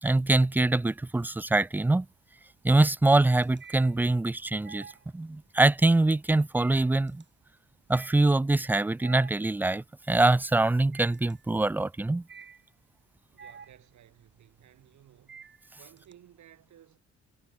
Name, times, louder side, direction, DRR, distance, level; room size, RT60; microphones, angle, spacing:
voice 1, 0.0-2.1 2.6-4.9 5.1-7.2 7.9-12.3, right 2 dB, 5° right, 0.3 m, -24 dB
sound 1, 0.6-1.3 1.6-16.1, right 6 dB, 35° right, 2.3 m, -51 dB
voice 2, 13.3-15.4 15.8-17.0, right 11 dB, 70° right, 4.9 m, -56 dB
cardioid pair, 90°, 30 cm